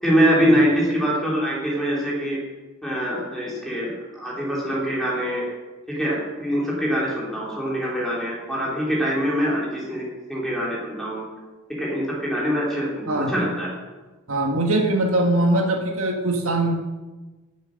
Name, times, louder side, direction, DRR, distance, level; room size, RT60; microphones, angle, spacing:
voice 1, 0.0-2.4 2.8-5.4 5.9-11.2 11.7-13.7, equal, ahead, -5 dB, 3.5 m, -24 dB
voice 2, 14.3-16.7, right 1 dB, 75° right, 2 dB, 1.7 m, -21 dB
18.0 x 7.9 x 6.5 m, 1.2 s
head